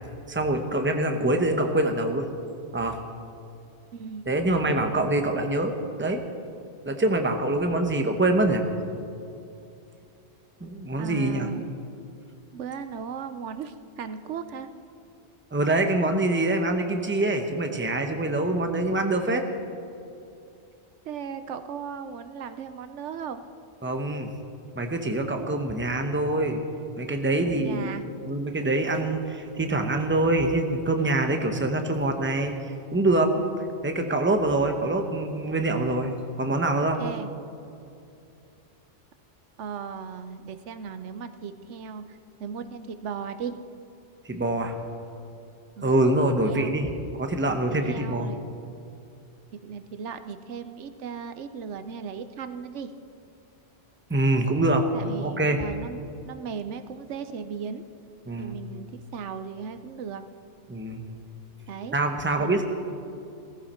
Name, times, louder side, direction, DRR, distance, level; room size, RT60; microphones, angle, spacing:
voice 1, 0.3-2.2 2.7-3.0 4.3-6.2 6.9-8.6 10.6-11.5 15.5-19.4 23.8-24.3 24.7-26.6 27.0-27.9 28.2-32.5 32.9-33.3 33.8-37.0 44.2-44.7 45.8-46.9 47.2-48.3 54.1-54.9 55.2-55.6 58.3-58.5 60.7-61.0 61.9-62.6, right 2 dB, 10° right, 5 dB, 0.9 m, -25 dB
voice 2, 3.9-4.2 11.0-11.7 12.5-14.7 21.0-23.4 27.4-28.0 36.8-37.3 39.6-43.6 45.8-45.9 46.4-46.7 47.7-48.4 49.5-52.9 54.9-56.0 56.2-57.8 58.4-60.2 61.7-62.0 62.4-62.6, right 6 dB, 80° right, 10 dB, 1.0 m, -36 dB
16.5 x 15.0 x 4.4 m, 2.6 s
omnidirectional pair, 1.2 m